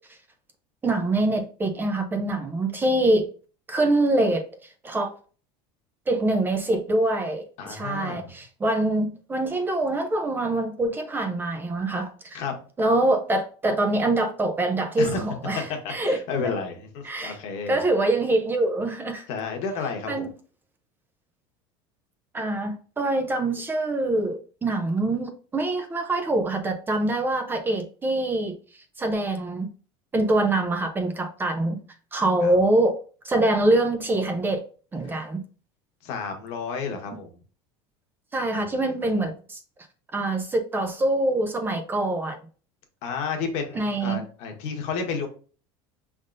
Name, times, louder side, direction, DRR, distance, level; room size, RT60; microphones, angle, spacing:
voice 1, 0.8-3.3 3.7-5.1 6.1-12.4 12.8-16.2 17.0-17.4 17.7-19.3 20.1-20.3 22.3-28.5 29.0-29.7 30.1-31.8 32.1-33.0 33.2-34.6 34.9-35.4 38.3-39.6 40.1-42.4 43.7-44.2, right 2 dB, 15° right, 0.5 m, -24 dB
voice 2, 7.6-8.3 12.3-12.5 15.0-15.2 15.7-17.8 19.3-20.3 32.4-32.6 36.0-37.4 38.5-38.6 39.0-39.1 43.0-45.3, left 5 dB, 60° left, 1.2 m, -31 dB
5.2 x 3.6 x 2.6 m
supercardioid pair, 140°, 13 cm